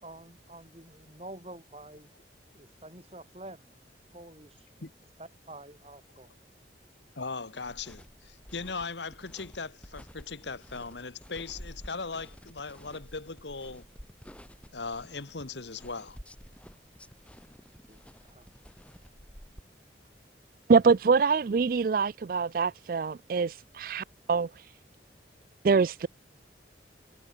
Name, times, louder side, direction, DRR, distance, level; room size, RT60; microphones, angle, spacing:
voice 1, 0.0-2.1 2.5-3.7 4.1-4.9 5.2-6.3 17.9-18.5, right 1 dB, 35° right, 5.3 m, -48 dB
voice 2, 7.1-13.9 14.7-16.2, left 4 dB, 80° left, 1.5 m, -39 dB
sound 1, 7.6-19.6, equal, 5° left, 5.7 m, -51 dB
voice 3, 20.7-24.7 25.6-26.1, right 5 dB, 50° right, 0.4 m, -25 dB
head